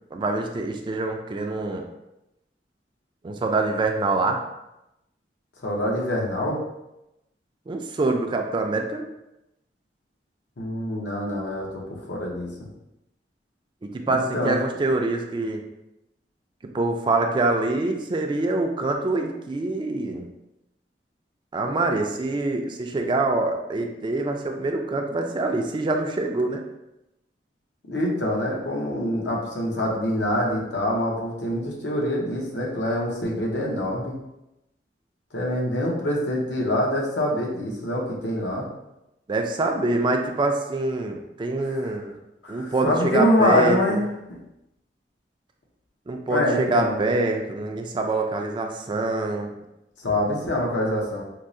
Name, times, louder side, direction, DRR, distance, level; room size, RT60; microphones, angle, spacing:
voice 1, 0.1-1.8 3.2-4.4 7.7-9.1 13.8-15.6 16.7-20.3 21.5-26.6 39.3-42.1 42.5-44.0 46.1-49.5, right 2 dB, 25° right, 3 dB, 0.3 m, -25 dB
voice 2, 5.6-6.6 10.6-11.8 12.1-12.5 14.1-14.6 27.9-34.1 35.3-38.7 41.6-41.9 42.4-44.0 46.3-47.0 50.0-51.2, left 1 dB, 75° left, -2 dB, 0.8 m, -25 dB
4.5 x 2.0 x 2.6 m, 0.90 s
head